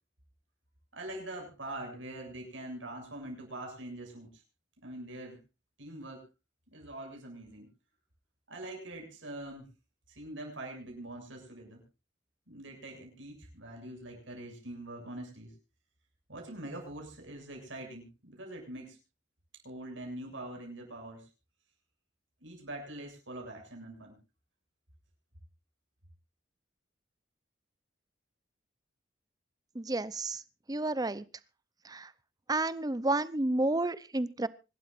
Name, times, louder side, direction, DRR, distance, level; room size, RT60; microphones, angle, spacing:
voice 1, 0.9-4.3 4.8-5.4 5.8-6.2 6.7-7.7 8.5-9.7 10.1-11.8 12.5-15.5 16.3-19.0 19.6-21.2 22.4-24.2, right 1 dB, 85° right, 2 dB, 7.5 m, -43 dB
voice 2, 29.7-30.4 30.7-31.2 31.8-32.1 32.5-34.5, right 2 dB, 20° right, 17 dB, 0.7 m, -31 dB
25.5 x 12.5 x 2.6 m, 0.29 s
head